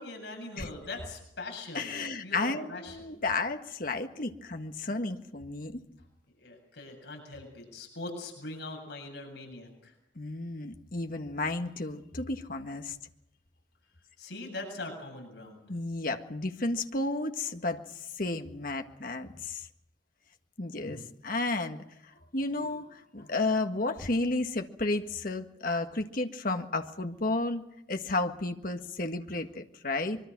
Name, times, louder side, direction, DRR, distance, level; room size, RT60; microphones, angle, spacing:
voice 1, 0.0-3.2 6.4-9.9 14.2-15.7, left 2 dB, 70° left, 2 dB, 7.7 m, -42 dB
voice 2, 1.7-5.8 10.1-13.0 15.7-17.8 18.2-19.7 20.6-21.8 22.3-27.6 27.9-30.2, left 2 dB, 50° left, 6 dB, 1.7 m, -32 dB
24.5 x 23.5 x 6.1 m, 0.82 s
head